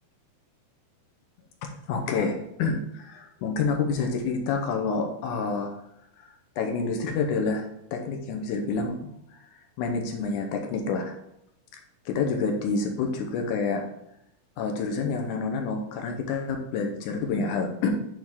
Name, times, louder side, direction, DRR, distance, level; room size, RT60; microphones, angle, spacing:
voice 1, 1.6-5.7 6.2-6.3 6.6-9.4 9.8-11.2 12.1-13.9 14.6-17.9, left 4 dB, 75° left, 3 dB, 2.1 m, -28 dB
9.0 x 3.8 x 3.6 m, 0.79 s
omnidirectional pair, 4.1 m